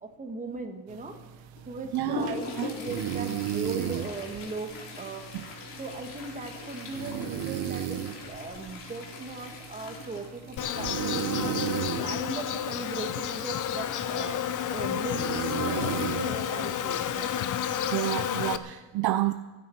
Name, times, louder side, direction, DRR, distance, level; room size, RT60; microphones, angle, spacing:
voice 1, 0.0-1.2 1.6-5.4 5.8-15.9 16.2-17.3, right 3 dB, 15° right, 1.5 m, -38 dB
sound 1, 0.9-18.0, right 11 dB, 80° right, 1.0 m, -36 dB
Toilet flush, 1.5-13.5 15.4-15.5 15.8-15.9 16.7-16.8 17.5-17.7 18.2-18.3, left 3 dB, 65° left, 3.8 m, -41 dB
voice 2, 1.9-2.7 5.3-5.4 17.9-19.3, right 15 dB, 55° right, 0.6 m, -29 dB
Insect, 10.6-18.6, left 9 dB, 45° left, 0.7 m, -31 dB
29.0 x 9.7 x 4.5 m
cardioid pair, 165°, 45 cm